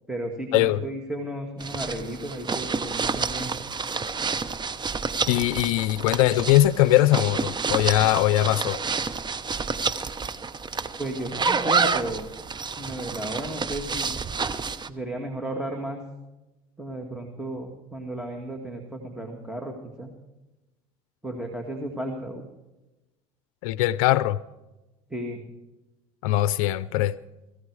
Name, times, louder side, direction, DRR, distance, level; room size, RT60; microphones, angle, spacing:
voice 1, 0.1-3.5 11.0-12.3 12.8-14.1 14.9-16.0 16.8-20.1 21.2-22.5 25.1-25.4, right 1 dB, 5° right, 2 dB, 2.0 m, -33 dB
sound 1, 1.6-14.9, right 5 dB, 25° right, 0.8 m, -29 dB
voice 2, 5.3-8.8 23.6-24.4 26.2-27.1, left 15 dB, 80° left, 16 dB, 0.5 m, -21 dB
17.5 x 15.0 x 4.8 m, 1.0 s
supercardioid pair, 85°, 18 cm